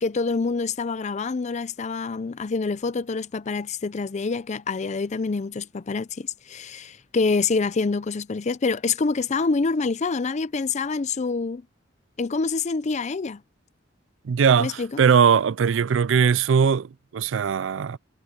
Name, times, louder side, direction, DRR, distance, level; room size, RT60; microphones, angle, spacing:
voice 1, 0.0-11.6 12.2-13.4 14.6-15.0, left 4 dB, 40° left, 0.5 m, -26 dB
voice 2, 14.2-18.0, right 6 dB, 90° right, 0.4 m, -20 dB
head